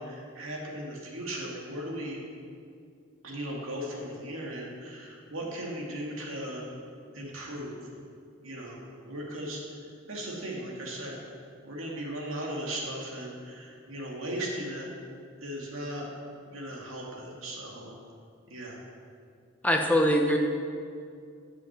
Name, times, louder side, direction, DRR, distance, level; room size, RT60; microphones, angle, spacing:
voice 1, 0.0-2.2 3.2-6.6 7.1-7.8 8.4-8.8 9.1-9.6 10.1-11.2 11.6-14.9 15.4-16.1 16.5-17.9 18.5-18.8, right 1 dB, 75° right, -2 dB, 2.3 m, -37 dB
voice 2, 19.6-20.4, equal, 5° left, 2 dB, 0.8 m, -22 dB
8.7 x 6.9 x 7.4 m, 2.3 s
head